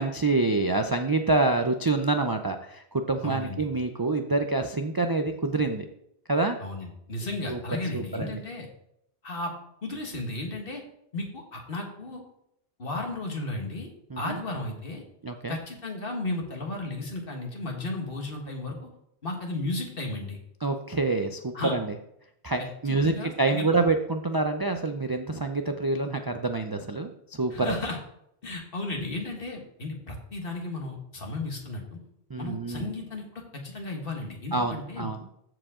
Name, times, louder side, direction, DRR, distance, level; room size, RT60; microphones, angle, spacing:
voice 1, 0.0-5.9 6.3-6.6 7.5-7.6 7.9-8.4 14.1-14.4 15.2-15.6 20.6-21.9 22.4-27.8 32.3-32.9 34.5-35.2, right 3 dB, 30° right, 5 dB, 0.4 m, -27 dB
voice 2, 3.2-3.6 6.6-8.7 9.2-9.5 9.8-10.8 11.1-12.2 12.8-13.9 14.2-15.0 15.5-18.9 19.2-20.4 21.5-21.8 22.6-23.7 27.5-28.0 28.4-32.0 32.4-35.1, left 2 dB, 55° left, 2 dB, 1.8 m, -34 dB
14.0 x 4.9 x 3.7 m, 0.76 s
omnidirectional pair, 1.1 m